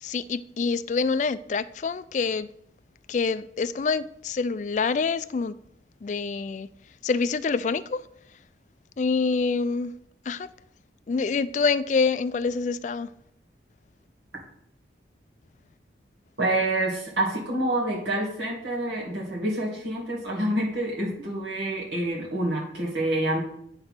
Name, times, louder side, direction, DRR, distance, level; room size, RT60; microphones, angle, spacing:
voice 1, 0.0-2.5 3.1-5.6 6.0-6.7 7.0-8.0 9.0-9.9 10.3-10.5 11.1-13.1, left 4 dB, 40° left, 0.3 m, -26 dB
voice 2, 16.4-23.4, right 1 dB, 75° right, 2.3 m, -27 dB
9.3 x 4.3 x 5.8 m
head